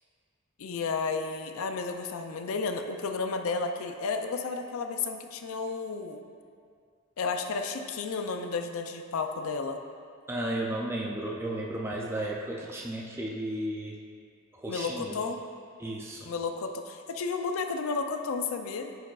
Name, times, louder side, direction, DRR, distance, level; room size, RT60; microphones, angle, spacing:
voice 1, 0.6-6.2 7.2-9.8 14.7-15.4 16.2-19.0, left 4 dB, 85° left, 6 dB, 0.4 m, -32 dB
voice 2, 10.3-14.0 14.5-15.2 15.8-16.3, right 1 dB, 10° right, -2 dB, 0.3 m, -34 dB
10.0 x 4.6 x 2.4 m, 2.2 s
head